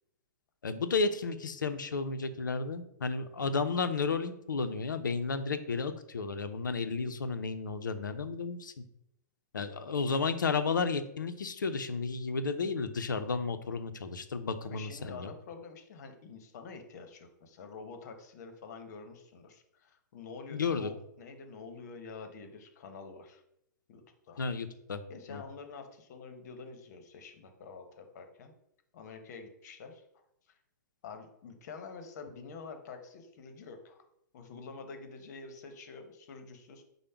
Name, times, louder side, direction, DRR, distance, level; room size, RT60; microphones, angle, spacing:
voice 1, 0.6-8.7 9.5-15.3 20.5-20.9 24.4-25.0 25.3-25.4, left 4 dB, 90° left, 10 dB, 0.5 m, -32 dB
voice 2, 14.6-23.4 23.9-24.4 25.1-28.5 28.9-30.0 31.0-34.0 34.3-36.8, left 4 dB, 60° left, 6 dB, 0.9 m, -47 dB
5.1 x 2.1 x 4.4 m, 0.77 s
hypercardioid pair, 115°, 10 cm